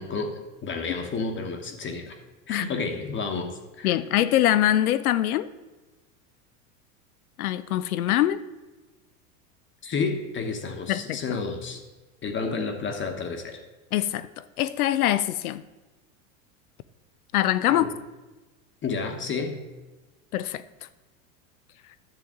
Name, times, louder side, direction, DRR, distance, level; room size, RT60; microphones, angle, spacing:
voice 1, 0.0-2.2 2.5-4.0 9.8-11.8 12.2-13.6 17.7-18.0 18.8-19.6, left 4 dB, 30° left, 1.1 m, -31 dB
voice 2, 3.8-5.5 7.4-8.4 10.9-11.2 13.9-15.6 17.3-17.9 20.3-20.6, left 13 dB, 85° left, 0.6 m, -23 dB
10.5 x 7.0 x 3.7 m
hypercardioid pair, 100°, 42 cm